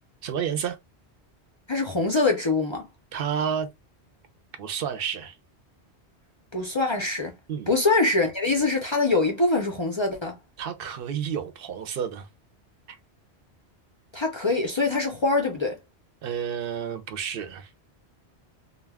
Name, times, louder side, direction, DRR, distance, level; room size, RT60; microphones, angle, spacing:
voice 1, 0.2-0.8 3.1-3.7 4.6-5.4 7.5-7.7 10.6-12.3 12.9-13.0 16.2-17.7, right 8 dB, 65° right, 0.7 m, -30 dB
voice 2, 1.7-2.8 6.5-7.3 7.7-10.4 14.1-15.8, left 3 dB, 40° left, 0.4 m, -24 dB
2.2 x 2.1 x 3.4 m
omnidirectional pair, 1.1 m